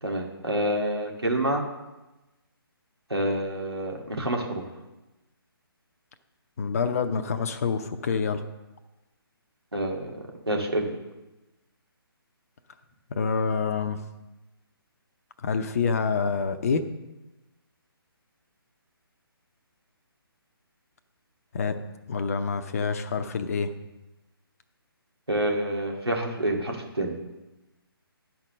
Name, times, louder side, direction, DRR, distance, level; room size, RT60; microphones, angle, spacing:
voice 1, 0.0-1.6 3.1-4.6 9.7-10.9 25.3-27.1, right 1 dB, 85° right, 0 dB, 2.1 m, -28 dB
voice 2, 6.6-8.4 13.1-14.0 15.4-16.9 21.5-21.8 22.1-23.7, left 5 dB, 40° left, 8 dB, 0.6 m, -27 dB
11.0 x 4.6 x 6.3 m, 1.0 s
figure-of-eight pair, 140°, 13 cm